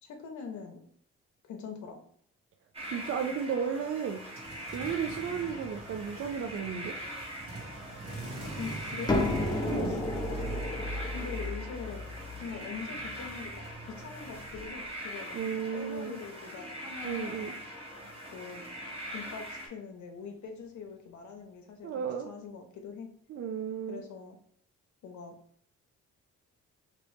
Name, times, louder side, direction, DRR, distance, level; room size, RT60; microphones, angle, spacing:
voice 1, 0.0-0.8 1.4-2.0 5.3-5.6 8.4-9.1 9.8-10.0 11.1-12.1 12.4-15.4 15.7-17.6 18.3-18.6 19.1-23.1 23.9-24.4 25.0-25.3, left 5 dB, 70° left, 3 dB, 0.8 m, -43 dB
sound 1, 2.7-19.7, equal, 20° right, 1.0 m, -42 dB
voice 2, 2.9-4.2 4.7-6.9 9.7-10.1 15.3-16.2 17.0-17.5 21.8-22.3 23.3-24.0, right 7 dB, 45° right, 5 dB, 0.4 m, -34 dB
sound 2, 4.2-15.0 15.3-19.4, right 2 dB, 65° right, 1.3 m, -46 dB
sound 3, 9.1-14.7, left 2 dB, 15° left, 0.6 m, -33 dB
3.0 x 2.9 x 3.2 m, 0.63 s
cardioid pair, 90°, 30 cm